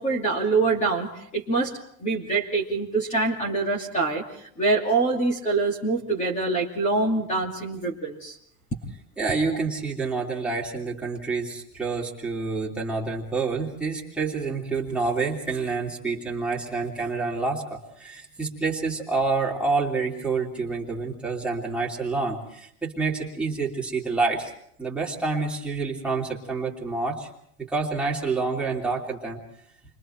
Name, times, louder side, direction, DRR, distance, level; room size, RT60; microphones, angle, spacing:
voice 1, 0.0-1.7 2.0-4.2 4.6-8.4 9.5-9.6, right 3 dB, 15° left, 1 dB, 2.6 m, -25 dB
voice 2, 9.2-24.5 24.8-27.3 27.6-29.4, right 4 dB, 5° right, -4 dB, 3.0 m, -28 dB
30.0 x 24.0 x 4.5 m, 0.69 s
supercardioid pair, 165°, 43 cm